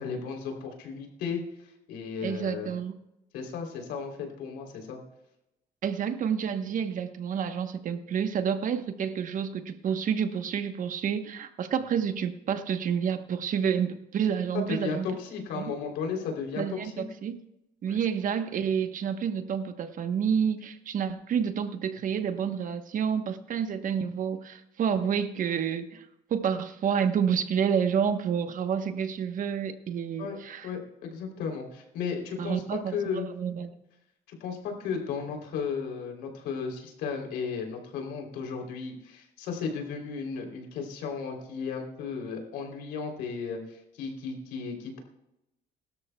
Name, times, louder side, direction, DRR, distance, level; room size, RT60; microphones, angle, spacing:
voice 1, 0.0-1.4 1.9-2.7 3.3-5.0 14.5-17.0 17.9-18.0 30.2-30.3 30.6-33.3 34.3-45.0, left 5 dB, 90° left, 2 dB, 3.3 m, -34 dB
voice 2, 2.2-2.9 5.8-15.1 15.5-15.7 16.6-17.4 17.8-26.0 26.3-30.7 32.4-33.7, right 7 dB, 50° right, 9 dB, 1.1 m, -29 dB
22.0 x 12.5 x 2.3 m, 0.89 s
cardioid pair, 110°, 17 cm